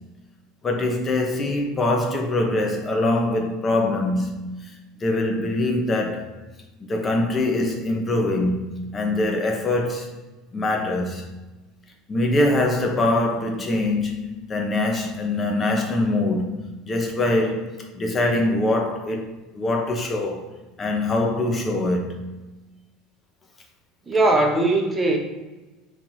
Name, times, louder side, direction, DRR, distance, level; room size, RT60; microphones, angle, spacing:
voice 1, 0.6-4.6 5.0-6.3 6.9-10.1 10.5-11.2 12.1-16.6 16.8-20.5 20.8-22.3, left 2 dB, 30° left, 1.0 m, -23 dB
voice 2, 24.1-25.2, right 2 dB, 20° right, 0.9 m, -19 dB
3.9 x 2.7 x 4.7 m
supercardioid pair, 105°, 0 cm